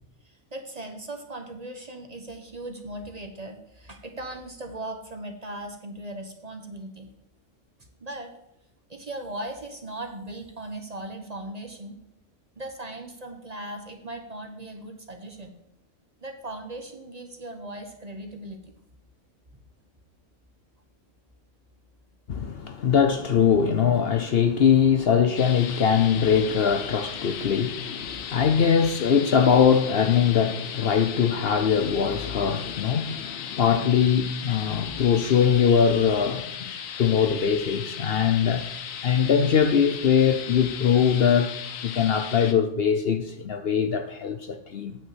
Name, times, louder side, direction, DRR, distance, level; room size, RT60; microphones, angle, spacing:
voice 1, 0.5-7.1 8.0-8.3 8.9-12.0 12.6-15.5 16.2-18.6, right 1 dB, 35° right, 1.0 m, -38 dB
voice 2, 22.3-36.7 37.0-38.6 39.0-45.0, left 7 dB, 55° left, 0.8 m, -22 dB
sound 1, 25.4-42.5, left 8 dB, 90° left, 1.2 m, -37 dB
8.8 x 5.8 x 7.4 m
omnidirectional pair, 1.3 m